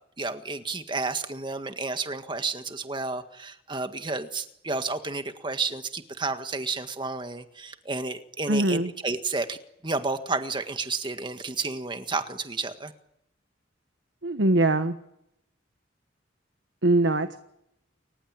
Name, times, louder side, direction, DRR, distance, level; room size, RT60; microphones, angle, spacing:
voice 1, 0.2-9.6 9.8-12.9, right 3 dB, 25° right, 8 dB, 1.7 m, -31 dB
voice 2, 8.5-8.9 14.2-15.0 16.8-17.4, right 2 dB, 80° right, 9 dB, 1.4 m, -22 dB
30.0 x 15.5 x 9.0 m, 0.79 s
head